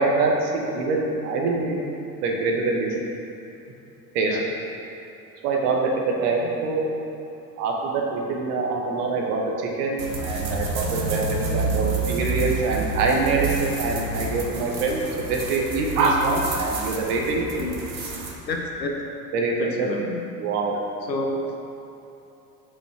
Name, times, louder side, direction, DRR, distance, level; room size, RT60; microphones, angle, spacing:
voice 1, 0.0-1.8 2.2-2.9 4.1-4.4 5.4-6.9 7.6-17.4 19.3-19.9 20.4-20.8, right 3 dB, 65° right, -1 dB, 1.5 m, -24 dB
sound 1, 10.0-18.3, right 3 dB, 90° right, 0.9 m, -29 dB
voice 2, 18.5-18.9 19.8-20.2 21.1-21.4, left 2 dB, 90° left, 1 dB, 0.9 m, -29 dB
5.9 x 5.5 x 6.5 m, 2.9 s
figure-of-eight pair, 65°, 49 cm